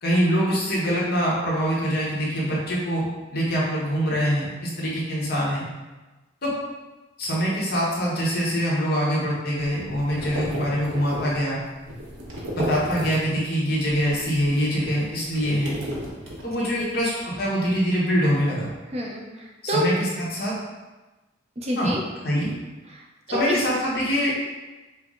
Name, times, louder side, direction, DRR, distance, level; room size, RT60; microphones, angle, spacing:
voice 1, 0.0-3.0 3.3-5.6 6.4-6.5 7.2-11.6 12.5-15.7 16.4-18.7 19.6-19.9 20.3-20.5 21.8-21.9 22.2-22.5 23.3-24.3, equal, 55° left, -5 dB, 1.1 m, -24 dB
sound 1, 9.6-13.5 13.8-16.9, equal, 75° right, 1.0 m, -35 dB
voice 2, 16.6-16.9 18.9-19.8 21.6-22.0 22.9-23.6, equal, 35° right, -1 dB, 0.6 m, -29 dB
5.6 x 2.0 x 3.7 m, 1.2 s
head